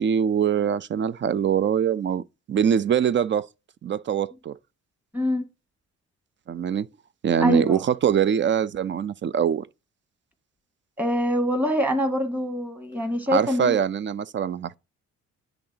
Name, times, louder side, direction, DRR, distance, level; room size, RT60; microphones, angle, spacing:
voice 1, 0.0-2.2 2.5-3.5 3.8-4.5 6.5-6.9 7.2-9.7 13.3-14.8, right 8 dB, 40° right, 0.5 m, -23 dB
voice 2, 5.1-5.4 7.4-7.8 11.0-13.8, equal, 5° right, 1.9 m, -24 dB
10.5 x 3.9 x 2.8 m
cardioid pair, 90°, 30 cm